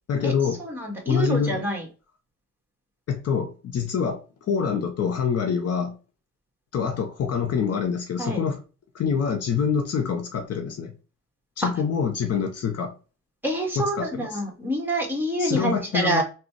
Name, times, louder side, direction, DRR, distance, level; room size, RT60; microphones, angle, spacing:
voice 1, 0.1-0.6 1.1-1.6 3.1-4.2 4.5-6.0 6.7-8.6 8.9-10.9 11.6-12.9 13.8-14.4 15.4-16.2, left 6 dB, 55° left, 0.7 m, -25 dB
voice 2, 0.6-1.8 8.2-8.4 11.6-11.7 13.4-16.2, right 1 dB, 5° right, 1.6 m, -26 dB
3.9 x 2.3 x 4.6 m
cardioid pair, 90°, 30 cm